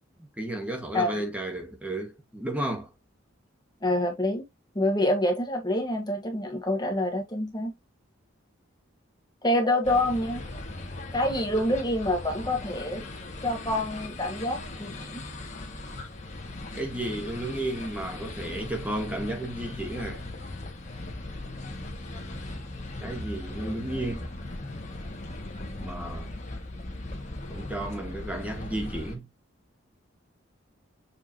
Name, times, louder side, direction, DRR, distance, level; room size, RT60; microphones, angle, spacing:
voice 1, 0.2-2.9 16.7-20.3 23.0-24.3 25.8-26.3 27.5-29.3, right 1 dB, 5° right, 1.6 m, -33 dB
voice 2, 3.8-4.4 4.7-7.7 9.4-10.4 11.1-13.0 13.4-15.2, left 1 dB, 20° left, 1.4 m, -27 dB
sound 1, 9.8-29.2, left 2 dB, 35° left, 1.8 m, -38 dB
7.2 x 4.6 x 2.8 m
head